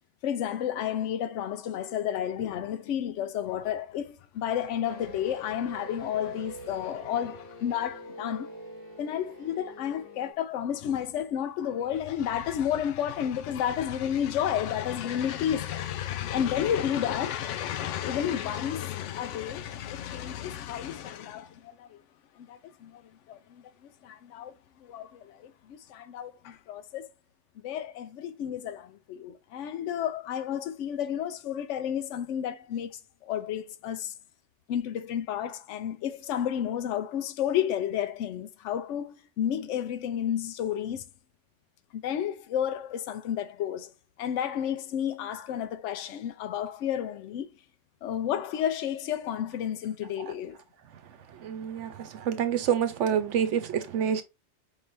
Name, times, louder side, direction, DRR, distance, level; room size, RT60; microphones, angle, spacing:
voice 1, 0.2-8.5 9.0-22.0 22.4-23.0 23.3-23.6 24.0-24.5 24.8-27.1 27.6-34.1 34.7-41.0 41.9-43.9 44.2-47.5 48.0-50.6, left 9 dB, 85° left, 0.9 m, -31 dB
sound 1, 4.8-10.3, equal, 20° left, 2.0 m, -45 dB
voice 2, 51.4-54.2, right 8 dB, 85° right, 1.1 m, -27 dB
5.1 x 3.3 x 2.6 m
omnidirectional pair, 1.2 m